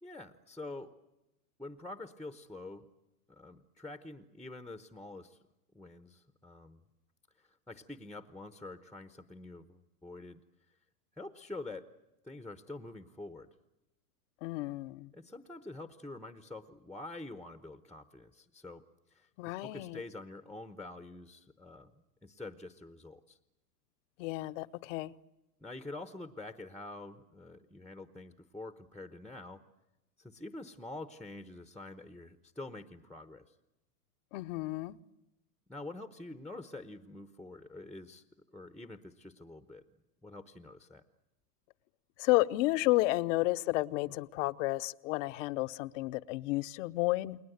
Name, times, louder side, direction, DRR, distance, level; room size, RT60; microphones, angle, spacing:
voice 1, 0.0-0.9 1.6-2.8 3.3-5.4 5.7-6.8 7.7-10.4 11.2-11.9 12.2-13.5 15.1-18.8 19.1-19.3 19.6-21.9 22.2-23.4 25.6-29.6 30.2-33.4 35.7-38.2 38.5-39.8 40.2-41.0, left 2 dB, ahead, 10 dB, 0.9 m, -46 dB
voice 2, 14.4-15.1 19.4-20.0 24.2-25.1 34.3-35.0 42.2-47.4, left 20 dB, 50° left, 15 dB, 0.9 m, -31 dB
30.0 x 21.0 x 8.0 m, 0.93 s
hypercardioid pair, 120°, 47 cm